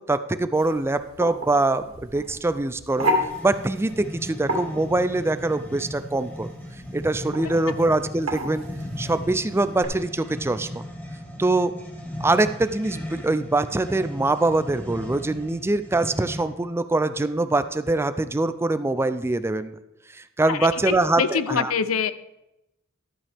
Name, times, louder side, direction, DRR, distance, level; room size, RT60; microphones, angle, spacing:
voice 1, 0.0-3.1 3.4-6.5 6.9-8.6 9.0-10.7 11.4-11.7 12.2-19.8 20.1-21.7, right 2 dB, 10° right, 12 dB, 0.4 m, -23 dB
sound 1, 0.6-9.9, equal, 75° right, 2.3 m, -32 dB
sound 2, 2.9-16.6, left 1 dB, 10° left, 1.6 m, -37 dB
voice 2, 20.5-22.1, left 6 dB, 85° left, 14 dB, 0.6 m, -25 dB
12.5 x 8.6 x 3.5 m, 0.90 s
head